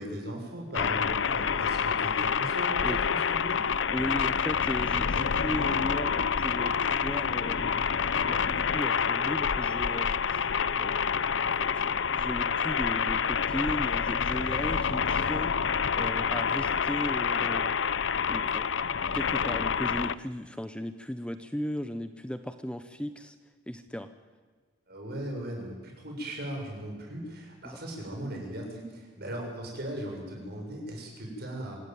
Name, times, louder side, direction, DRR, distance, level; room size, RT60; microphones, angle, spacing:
voice 1, 0.0-3.6 24.9-31.8, right 1 dB, 55° right, 1 dB, 7.3 m, -38 dB
sound 1, 0.7-20.1, left 6 dB, 70° left, 0.7 m, -28 dB
voice 2, 3.9-7.9 8.3-10.5 10.8-15.5 16.0-17.7 18.3-18.7 19.1-23.4 23.7-24.1 27.6-27.8, equal, 5° left, 9 dB, 0.9 m, -36 dB
25.5 x 16.5 x 9.4 m, 1.4 s
head